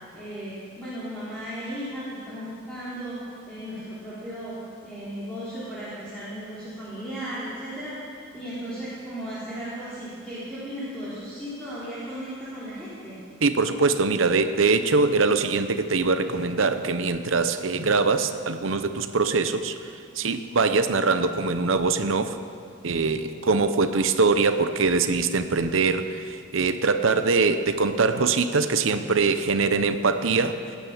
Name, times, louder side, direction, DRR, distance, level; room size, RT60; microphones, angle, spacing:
voice 1, 0.1-4.6 4.8-8.0 8.3-13.2, equal, 5° left, -12 dB, 3.5 m, -35 dB
voice 2, 13.4-19.8 20.1-22.4 22.8-30.6, right 4 dB, 75° right, 9 dB, 0.8 m, -23 dB
18.0 x 10.0 x 7.3 m, 2.4 s
head